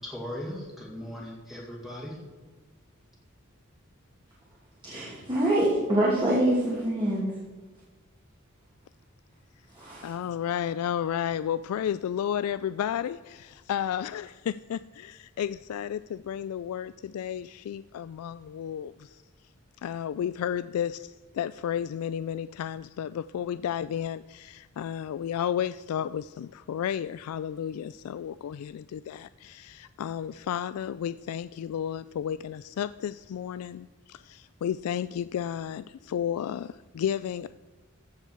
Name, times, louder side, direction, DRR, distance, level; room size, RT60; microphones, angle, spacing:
voice 1, 0.0-2.2, left 1 dB, ahead, -3 dB, 2.2 m, -38 dB
voice 2, 4.8-7.4 9.7-10.1, right 1 dB, 20° right, -7 dB, 2.5 m, -25 dB
voice 3, 10.0-19.2 19.8-37.5, left 9 dB, 85° left, 15 dB, 0.3 m, -32 dB
15.0 x 7.2 x 4.5 m, 1.3 s
head